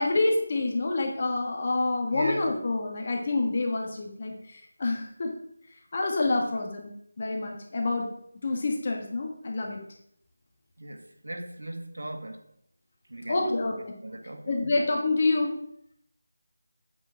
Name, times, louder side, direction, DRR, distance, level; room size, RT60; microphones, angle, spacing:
voice 1, 0.0-5.3 5.9-6.9 7.2-8.1 8.4-9.8 13.3-13.9 14.5-15.5, left 2 dB, 30° left, 1.5 m, -27 dB
voice 2, 2.1-2.5 10.8-12.5 13.1-14.5, right 1 dB, 80° right, 1.7 m, -38 dB
8.4 x 6.7 x 6.3 m
figure-of-eight pair, 175°, 0 cm